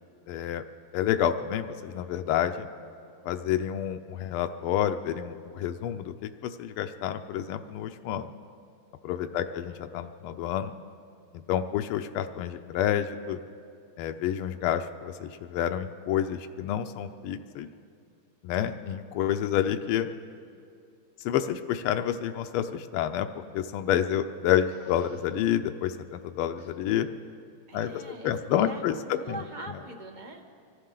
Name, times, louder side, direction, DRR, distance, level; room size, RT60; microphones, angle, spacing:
voice 1, 0.3-0.6 0.9-2.7 3.2-8.3 9.0-10.7 11.5-13.4 14.0-17.7 18.4-20.1 21.2-27.1 27.7-29.4, left 10 dB, 85° left, 7 dB, 1.5 m, -29 dB
voice 2, 9.3-9.6 19.4-19.7 27.7-28.3 28.6-30.5, right 2 dB, 35° right, 2 dB, 0.8 m, -43 dB
Fart, 24.7-25.3 26.6-26.8, left 3 dB, 50° left, 2.5 m, -54 dB
24.5 x 15.0 x 3.8 m, 2.4 s
omnidirectional pair, 2.3 m